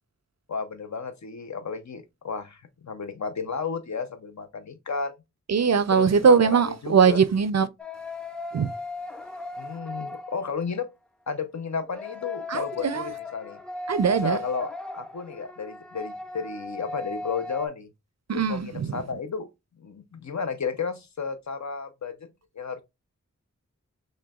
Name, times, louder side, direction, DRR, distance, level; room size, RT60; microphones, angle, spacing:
voice 1, 0.5-5.2 5.9-7.2 9.6-10.9 11.3-13.6 14.2-17.9 18.3-19.5 19.8-22.8, left 5 dB, 60° left, 0.6 m, -33 dB
voice 2, 5.5-7.7 8.5-8.7 12.5-13.1 13.9-14.4 18.3-19.0, right 6 dB, 55° right, 0.4 m, -21 dB
sound 1, 7.8-10.9 11.8-17.7, left 2 dB, 5° left, 0.4 m, -37 dB
6.0 x 2.2 x 2.3 m
wide cardioid pair, 50°, 31 cm